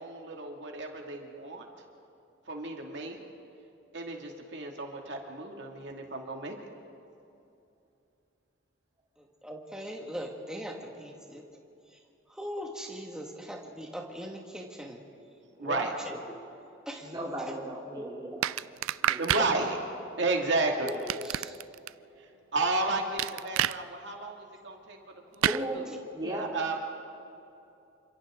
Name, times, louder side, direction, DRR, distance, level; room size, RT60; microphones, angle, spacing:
voice 1, 0.0-1.7 2.5-3.2 3.9-6.6 15.6-15.9 19.2-19.8 20.2-21.0 22.2-25.0 25.3-25.5 25.7-25.8 26.3-26.8, right 3 dB, 60° right, 1 dB, 2.5 m, -32 dB
voice 2, 9.2-11.4 11.9-12.0 12.3-15.0 15.6-16.4 16.9-17.5 17.9-18.4 20.8-21.6, equal, 5° right, 0 dB, 2.0 m, -40 dB
voice 3, 17.0-18.6 19.1-19.3 25.4-25.8 26.1-26.5, right 1 dB, 20° right, -4 dB, 3.5 m, -36 dB
sound 1, 18.4-19.5 20.9-21.9 23.2-23.8 25.4-25.6, right 11 dB, 85° right, 0.4 m, -28 dB
28.5 x 26.0 x 3.9 m, 2.7 s
head